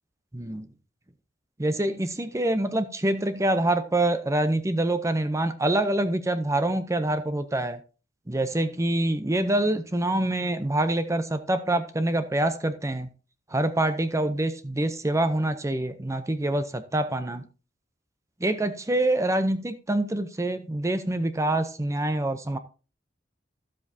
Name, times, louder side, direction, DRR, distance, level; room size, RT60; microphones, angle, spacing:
voice 1, 0.3-0.7 1.6-7.8 8.3-13.1 13.5-17.4 18.4-22.6, right 1 dB, 15° right, 0.6 m, -26 dB
13.0 x 7.5 x 2.7 m
head